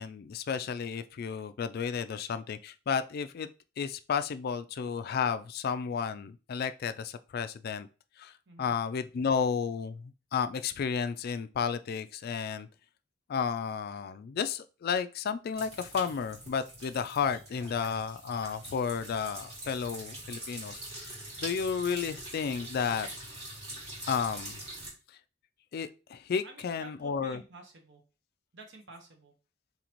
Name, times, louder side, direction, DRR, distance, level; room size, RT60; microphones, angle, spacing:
voice 1, 0.0-3.5 3.8-7.9 8.2-8.3 8.6-12.7 13.3-23.1 24.1-24.6 25.7-27.4, left 6 dB, 50° left, 0.3 m, -32 dB
sound 1, 15.5-24.9, right 1 dB, 35° right, 2.0 m, -44 dB
voice 2, 26.4-28.0 28.5-29.3, right 2 dB, 60° right, 1.1 m, -51 dB
4.1 x 3.9 x 3.0 m
head